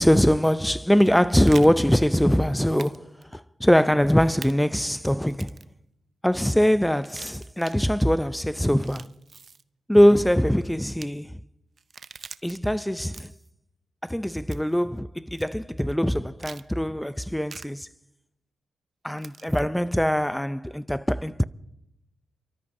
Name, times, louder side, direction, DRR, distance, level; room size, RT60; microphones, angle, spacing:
voice 1, 0.0-5.6 6.2-9.1 9.9-11.4 12.4-13.3 14.0-17.9 19.0-21.4, equal, 5° left, 0.4 m, -22 dB
sound 1, 0.9-1.7 2.8-3.0 3.2-3.3 4.4-4.5 5.3-5.7 6.9-7.8 8.7-9.6 10.8-11.1 11.8-12.6 13.0-13.5 14.5-14.8 15.4-15.5 16.4-16.7 17.5-17.7 19.2-19.6, right 5 dB, 50° right, 0.5 m, -43 dB
30.0 x 13.0 x 2.7 m
cardioid pair, 85°, 0 cm